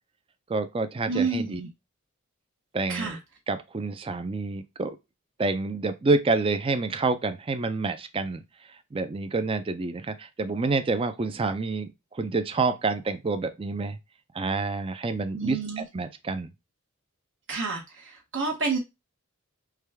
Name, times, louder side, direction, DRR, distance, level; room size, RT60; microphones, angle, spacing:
voice 1, 0.5-1.6 2.7-3.2 3.5-5.0 5.4-8.4 8.9-14.0 14.3-16.5, right 3 dB, 25° right, 0.4 m, -28 dB
voice 2, 1.1-1.7 2.9-3.2 15.3-15.8 17.5-18.8, right 4 dB, 60° right, 0.9 m, -29 dB
4.7 x 2.3 x 3.3 m
head